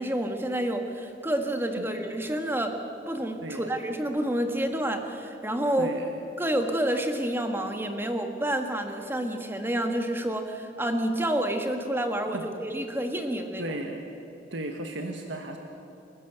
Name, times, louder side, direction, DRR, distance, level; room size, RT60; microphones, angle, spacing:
voice 1, 0.0-2.8 3.1-5.9 6.4-13.6, right 1 dB, 10° right, 5 dB, 1.7 m, -29 dB
voice 2, 3.4-3.8 5.8-6.1 12.3-12.4 13.6-14.0 14.5-15.6, right 1 dB, 70° right, 3 dB, 1.6 m, -35 dB
29.0 x 13.0 x 8.2 m, 2.8 s
head